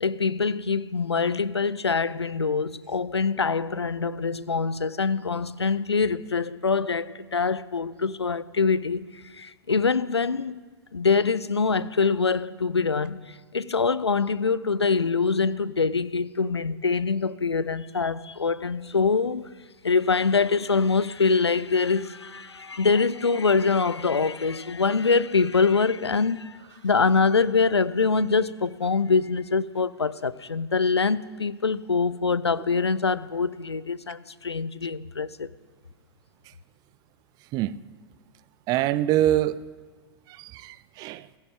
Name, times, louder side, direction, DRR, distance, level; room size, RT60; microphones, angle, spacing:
voice 1, 0.0-10.6 10.9-19.4 19.8-26.6 26.8-35.5, left 4 dB, 85° left, 0.5 m, -24 dB
voice 2, 38.7-39.6 40.4-41.3, right 13 dB, 30° right, 0.5 m, -24 dB
17.5 x 15.5 x 3.7 m
figure-of-eight pair, 100°, 14 cm